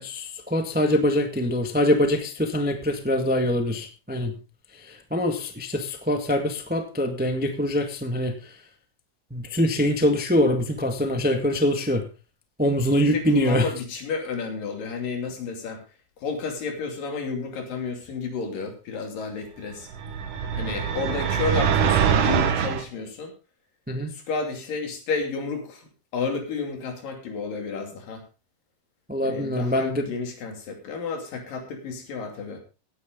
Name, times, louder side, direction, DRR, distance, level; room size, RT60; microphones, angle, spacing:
voice 1, 0.0-4.3 4.9-8.5 9.3-12.0 12.6-13.7 23.9-24.1 29.1-30.1, left 1 dB, 10° right, 5 dB, 0.4 m, -24 dB
voice 2, 13.1-15.8 16.2-19.9 20.5-23.3 24.1-25.9 26.1-28.2 29.2-32.6, left 4 dB, 90° left, 4 dB, 4.5 m, -31 dB
sound 1, 19.9-22.8, right 8 dB, 85° right, 3.1 m, -23 dB
16.5 x 9.9 x 3.8 m, 0.32 s
omnidirectional pair, 3.8 m